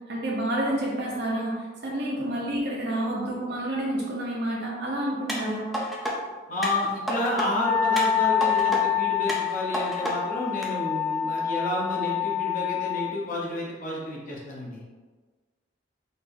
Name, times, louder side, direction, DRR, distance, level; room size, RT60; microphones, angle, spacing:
voice 1, 0.1-5.7, right 1 dB, 60° right, -4 dB, 1.1 m, -29 dB
sound 1, 5.3-6.1 6.6-7.5 8.0-8.8 9.3-10.1 10.6-10.7, equal, ahead, 0.6 m, -30 dB
voice 2, 6.5-14.8, left 1 dB, 45° left, -4 dB, 1.0 m, -30 dB
Wind instrument woodwind instrument, 7.5-13.1, left 9 dB, 65° left, 1.3 m, -26 dB
4.1 x 2.8 x 3.5 m, 1.4 s
head